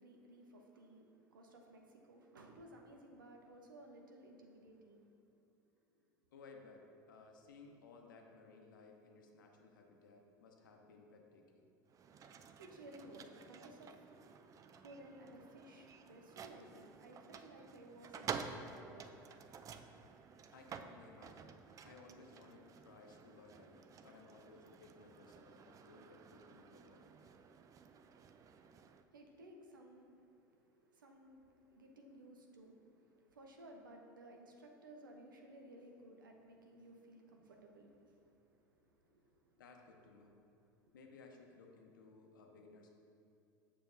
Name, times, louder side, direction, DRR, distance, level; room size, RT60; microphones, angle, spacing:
voice 1, 0.0-5.1 12.3-19.6 29.1-39.6 40.9-41.0, right 1 dB, 85° right, 2 dB, 0.7 m, -58 dB
voice 2, 6.3-11.7 20.5-27.4 39.6-40.4 40.9-42.9, left 3 dB, 80° left, 2 dB, 0.8 m, -59 dB
sound 1, 11.9-29.0, right 6 dB, 30° right, 0.4 m, -51 dB
7.0 x 6.6 x 2.6 m, 2.8 s
hypercardioid pair, 75°, 11 cm